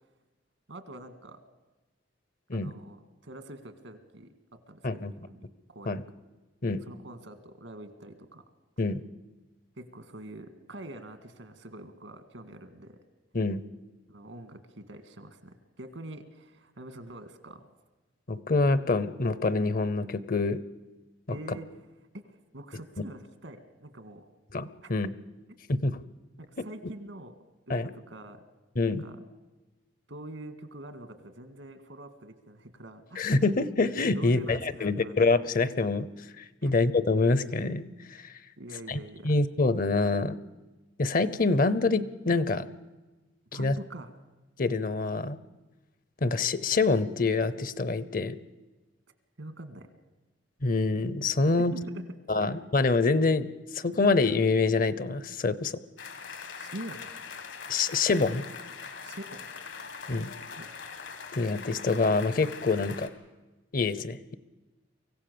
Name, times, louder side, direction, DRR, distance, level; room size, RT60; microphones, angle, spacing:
voice 1, 0.7-1.4 2.5-4.3 4.7-5.4 5.7-6.0 6.9-8.4 9.8-13.0 14.1-17.7 21.3-21.7 22.5-24.2 24.8-24.9 26.4-27.3 27.7-28.4 29.0-29.2 30.1-33.4 34.1-35.1 36.6-36.8 38.6-39.3 43.5-44.1 49.4-49.9 51.7-52.0 52.4-52.5 56.6-57.1 59.0-59.5 60.4-60.7, right 1 dB, 85° right, 9 dB, 1.9 m, -45 dB
voice 2, 18.3-20.6 24.5-25.1 25.7-26.0 27.7-27.9 28.8-29.0 33.2-36.1 36.4-37.8 38.1-38.3 38.9-40.4 41.0-42.7 43.6-43.8 44.6-45.4 46.2-48.4 50.6-51.7 52.3-53.5 53.7-55.7 57.7-58.4 60.1-60.3 61.3-63.1 63.7-64.3, left 3 dB, 50° left, 16 dB, 0.8 m, -26 dB
sound 1, 56.0-63.1, left 5 dB, 70° left, 1.9 m, -42 dB
24.5 x 16.0 x 6.9 m, 1.1 s
head